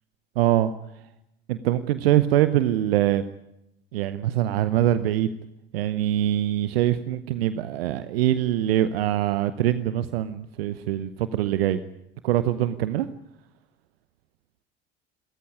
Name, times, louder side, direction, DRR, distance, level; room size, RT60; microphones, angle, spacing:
voice 1, 0.4-0.7 1.5-3.2 3.9-5.3 5.7-11.8 12.2-13.1, right 13 dB, 70° right, 14 dB, 0.9 m, -23 dB
28.0 x 14.0 x 9.9 m, 0.85 s
figure-of-eight pair, 60°, 31 cm